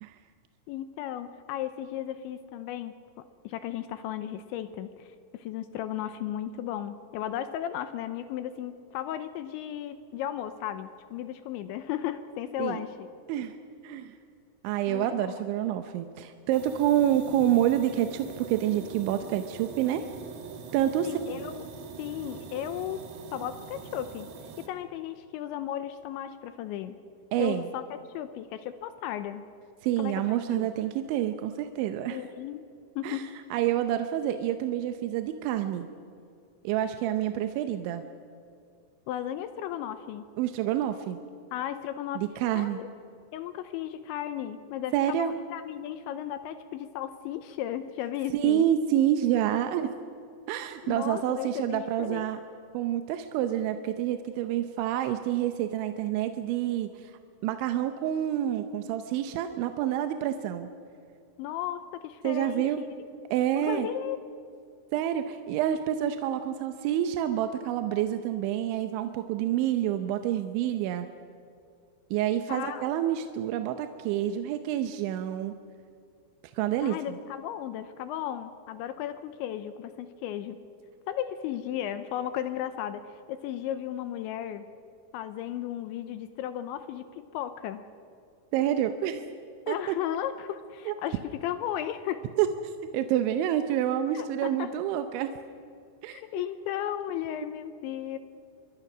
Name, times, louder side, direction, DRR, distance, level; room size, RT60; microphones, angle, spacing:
voice 1, 0.7-13.1 14.9-15.4 21.0-21.6 22.0-23.0 23.3-24.3 24.6-27.0 27.4-29.5 30.0-30.7 32.1-32.6 33.0-33.3 39.1-40.3 41.5-42.9 43.3-48.7 50.8-52.3 61.4-63.1 63.5-64.2 72.5-72.8 76.8-80.6 81.1-84.7 85.1-87.8 89.7-92.3 94.1-94.7 96.1-98.2, left 11 dB, 80° left, 11 dB, 2.8 m, -35 dB
voice 2, 13.8-14.1 14.6-20.0 20.7-21.4 27.3-27.7 29.8-32.2 33.0-33.2 33.5-35.9 36.6-38.0 40.4-41.2 42.2-42.8 44.9-45.3 48.3-49.9 50.5-52.4 52.7-57.1 57.4-60.7 62.2-62.9 63.3-63.9 64.9-71.1 72.1-75.5 76.6-77.0 88.5-89.2 89.7-90.0 90.9-91.0 92.4-92.5 92.9-95.3 96.0-96.2, right 11 dB, 80° right, 8 dB, 2.9 m, -28 dB
sound 1, 16.5-24.7, right 6 dB, 60° right, 3.0 m, -43 dB
26.0 x 22.5 x 6.1 m, 2.4 s
omnidirectional pair, 5.9 m